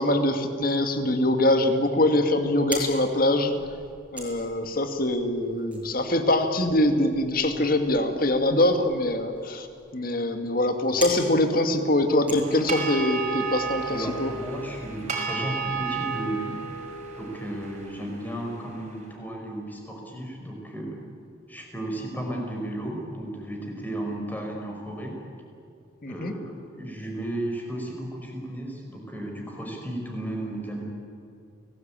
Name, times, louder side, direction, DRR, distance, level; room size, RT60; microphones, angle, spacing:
voice 1, 0.0-3.5 4.1-9.7 9.9-14.3 26.0-26.3, left 1 dB, 45° left, 6 dB, 2.1 m, -23 dB
sound 1, 2.3-13.2, right 1 dB, 5° right, 6.6 m, -42 dB
sound 2, 12.4-18.8, right 5 dB, 35° right, 5.1 m, -33 dB
voice 2, 13.9-16.6 17.1-21.0 21.5-25.1 26.1-26.4 26.7-30.8, right 1 dB, 10° left, 0 dB, 5.1 m, -34 dB
29.0 x 19.0 x 8.9 m, 2.4 s
head